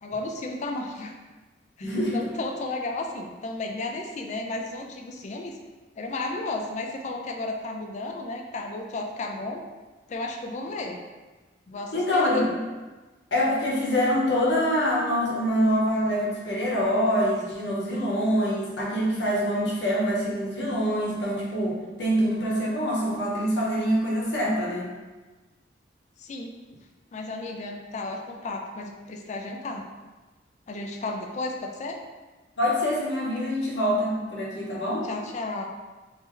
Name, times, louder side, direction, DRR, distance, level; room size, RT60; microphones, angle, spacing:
voice 1, 0.0-1.1 1.8-5.5 6.0-9.6 10.1-11.0 11.7-12.5 26.2-26.5 27.1-29.8 30.7-32.0 35.0-35.6, left 2 dB, 40° left, 2 dB, 0.3 m, -33 dB
voice 2, 1.8-2.2 11.9-12.5 13.3-24.9 32.6-35.1, equal, 70° left, -4 dB, 0.9 m, -25 dB
3.1 x 2.7 x 3.7 m, 1.2 s
head